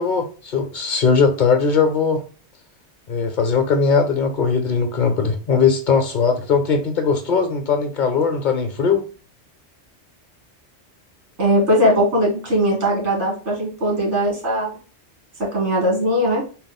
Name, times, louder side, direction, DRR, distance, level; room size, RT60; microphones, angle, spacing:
voice 1, 0.0-2.2 3.1-9.0, left 5 dB, 50° left, 0.7 m, -19 dB
voice 2, 11.4-14.7 15.4-16.4, equal, 85° right, 1.9 m, -19 dB
4.1 x 2.0 x 4.0 m
omnidirectional pair, 1.2 m